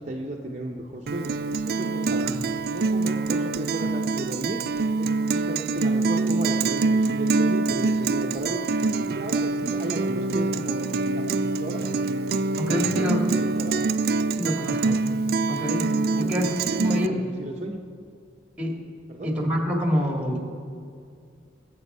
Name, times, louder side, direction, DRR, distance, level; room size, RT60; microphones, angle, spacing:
voice 1, 0.0-1.3 1.6-2.3 2.7-4.6 5.0-8.6 9.0-10.8 11.1-11.8 12.4-13.8 16.1-17.8 19.1-19.3, right 1 dB, 35° right, 0 dB, 0.8 m, -34 dB
Guitar, 1.1-17.1, right 3 dB, 50° right, 0.4 m, -25 dB
voice 2, 12.6-13.3 14.3-15.0 15.5-17.2 18.6-18.8 19.2-20.4, equal, 5° right, 1 dB, 1.9 m, -27 dB
21.0 x 8.2 x 5.5 m, 2.3 s
head